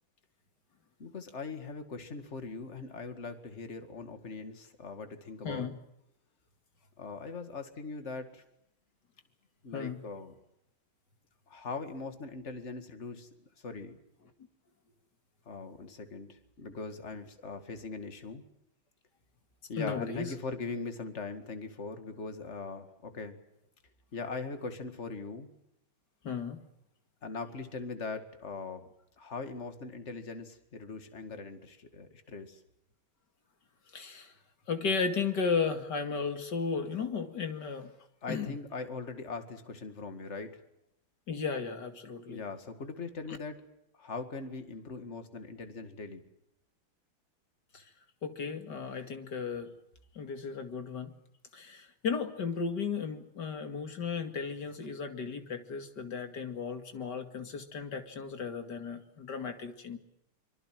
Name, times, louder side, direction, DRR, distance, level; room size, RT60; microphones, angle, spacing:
voice 1, 1.0-5.7 7.0-8.4 9.6-10.4 11.5-13.3 13.6-14.0 15.5-18.4 19.7-23.4 24.1-25.5 27.2-28.9 29.2-32.6 38.2-40.6 42.3-43.6 44.0-46.2, left 4 dB, 35° left, 8 dB, 2.3 m, -40 dB
voice 2, 5.4-5.8 9.7-10.0 19.8-20.3 26.2-26.6 33.9-34.3 34.7-37.9 38.3-38.5 41.3-42.4 47.7-47.8 48.2-49.7 50.2-51.1 51.5-60.0, left 5 dB, 55° left, 7 dB, 2.8 m, -35 dB
24.5 x 24.5 x 7.6 m, 0.80 s
omnidirectional pair, 2.3 m